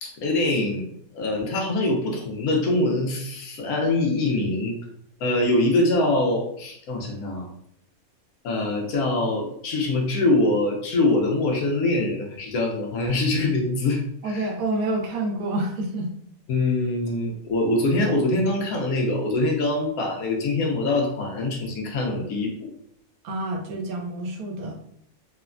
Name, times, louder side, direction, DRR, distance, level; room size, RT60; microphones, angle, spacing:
voice 1, 0.0-0.8 1.1-4.8 5.2-7.5 8.4-14.5 16.5-22.7, left 2 dB, 85° left, 0 dB, 1.1 m, -24 dB
voice 2, 14.2-16.1 23.2-24.8, right 2 dB, 80° right, 1 dB, 1.1 m, -28 dB
3.1 x 2.1 x 2.4 m, 0.69 s
omnidirectional pair, 1.5 m